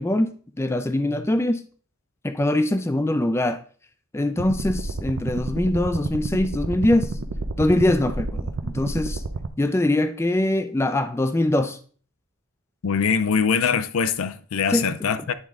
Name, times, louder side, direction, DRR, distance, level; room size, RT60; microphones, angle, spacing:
voice 1, 0.0-1.6 2.2-3.6 4.1-7.1 7.6-9.2 9.6-11.8 14.7-14.8, left 1 dB, 10° left, 0.3 m, -23 dB
sound 1, 4.4-9.5, right 2 dB, 70° right, 0.6 m, -30 dB
voice 2, 12.8-15.3, left 6 dB, 90° left, 0.5 m, -23 dB
9.7 x 3.7 x 3.5 m
head